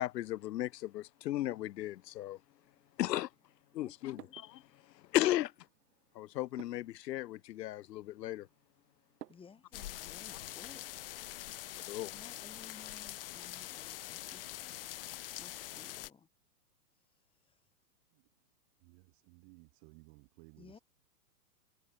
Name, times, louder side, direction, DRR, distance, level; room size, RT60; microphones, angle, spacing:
voice 1, 0.0-2.4 3.0-3.3 3.7-4.6 5.1-5.5 6.2-8.5 11.9-12.1, left 14 dB, 85° left, 0.7 m, -35 dB
sound 1, 2.6-9.9, right 11 dB, 70° right, 3.1 m, -59 dB
voice 2, 3.8-4.3 9.3-11.1 12.1-14.8 15.4-16.3 20.6-20.8, left 6 dB, 10° left, 3.1 m, -57 dB
sound 2, 9.7-16.1, left 14 dB, 40° left, 0.4 m, -44 dB
voice 3, 18.8-20.8, right 34 dB, 40° right, 7.6 m, -59 dB
hypercardioid pair, 140°, 49 cm